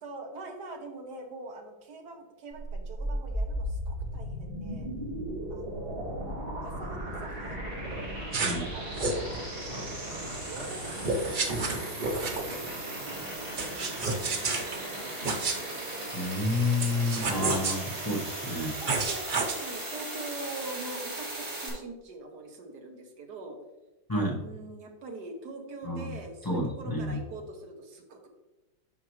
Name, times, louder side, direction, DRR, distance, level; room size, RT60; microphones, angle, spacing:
voice 1, 0.0-4.9 5.5-6.1 6.6-8.1 8.7-9.3 9.7-9.8 10.4-13.3 13.6-15.3 17.2-17.4 18.8-23.6 24.4-28.3, right 2 dB, 60° right, 3 dB, 1.5 m, -44 dB
sound 1, 2.5-21.7, right 1 dB, 30° right, 2.2 m, -36 dB
sound 2, 8.3-8.6 9.0-9.2 11.0-12.6 13.6-14.8 15.2-15.6 16.8-17.8 18.9-19.5, right 3 dB, 80° right, 0.4 m, -29 dB
voice 2, 16.1-18.8 24.1-24.4 25.8-26.1 26.4-27.2, left 2 dB, 15° left, -3 dB, 0.8 m, -30 dB
8.2 x 6.0 x 3.1 m, 1.0 s
omnidirectional pair, 2.1 m